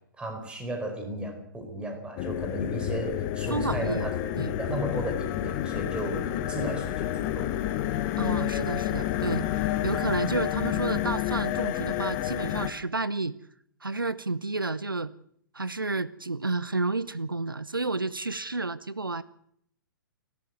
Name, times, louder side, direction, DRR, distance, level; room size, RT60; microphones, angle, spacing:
voice 1, 0.2-4.1 4.6-7.1 7.3-7.6, right 1 dB, 10° right, 5 dB, 4.7 m, -34 dB
sound 1, 2.2-12.7, left 12 dB, 30° left, 1.5 m, -29 dB
voice 2, 3.5-4.5 8.2-13.4 13.8-15.1 15.5-19.2, right 3 dB, 80° right, 17 dB, 0.9 m, -31 dB
29.0 x 12.5 x 8.0 m, 0.70 s
figure-of-eight pair, 115°, 11 cm